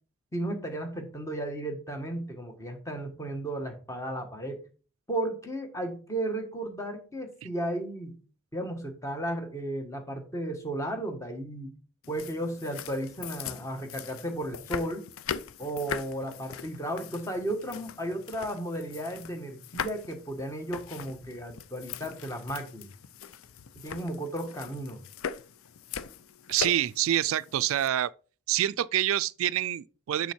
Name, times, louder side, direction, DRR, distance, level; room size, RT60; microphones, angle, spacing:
voice 1, 0.3-4.6 5.1-8.2 8.5-11.7 12.1-15.1 15.6-22.9 23.8-25.0, right 1 dB, 15° left, 1.4 m, -34 dB
sound 1, 12.0-27.9, left 7 dB, 90° left, 0.5 m, -41 dB
voice 2, 26.5-28.1 28.5-30.3, right 12 dB, 80° right, 0.3 m, -26 dB
7.0 x 6.2 x 4.5 m
head